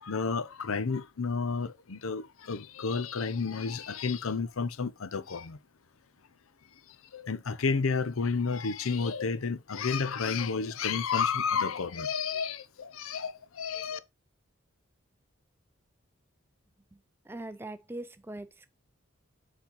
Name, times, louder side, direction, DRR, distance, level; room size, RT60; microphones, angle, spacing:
voice 1, 0.0-5.6 7.1-14.0, left 5 dB, 85° left, 0.7 m, -31 dB
voice 2, 17.3-18.7, right 1 dB, 10° right, 0.4 m, -41 dB
7.2 x 4.2 x 4.5 m
head